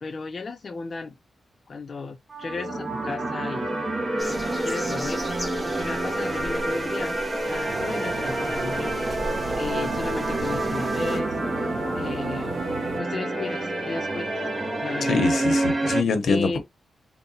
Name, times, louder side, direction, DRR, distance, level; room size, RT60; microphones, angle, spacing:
voice 1, 0.0-1.2 1.7-3.7 4.6-7.2 7.5-8.9 9.6-14.4 14.8-15.1 16.2-16.6, left 4 dB, 40° left, 0.4 m, -35 dB
sound 1, 2.3-16.0, right 2 dB, 30° right, 0.8 m, -28 dB
sound 2, 4.2-11.2, equal, ahead, 0.9 m, -38 dB
sound 3, 7.7-13.0, right 4 dB, 65° right, 0.7 m, -36 dB
voice 2, 15.0-16.6, left 5 dB, 75° left, 0.8 m, -24 dB
3.8 x 2.2 x 4.0 m
wide cardioid pair, 145°, 0 cm